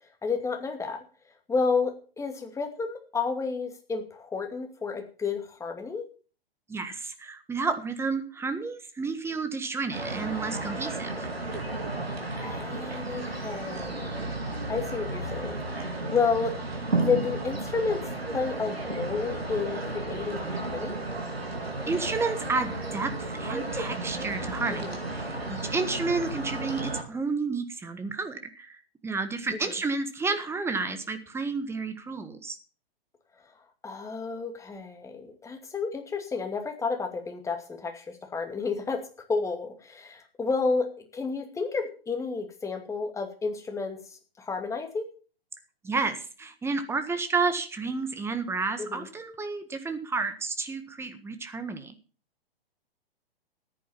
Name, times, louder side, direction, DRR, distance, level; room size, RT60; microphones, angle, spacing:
voice 1, 0.2-1.0 1.5-6.1 12.3-14.1 14.7-15.6 16.1-16.5 17.0-21.0 24.7-25.0 29.6-29.7 33.8-39.0 39.3-44.0 44.4-45.1 48.8-49.1, left 4 dB, 10° left, 5 dB, 2.4 m, -31 dB
voice 2, 6.7-11.3 21.9-32.6 45.8-51.9, right 4 dB, 10° right, 9 dB, 1.5 m, -31 dB
sound 1, 9.9-27.0, right 2 dB, 85° right, 3.8 m, -33 dB
14.0 x 10.5 x 5.8 m, 0.38 s
figure-of-eight pair, 115°, 30 cm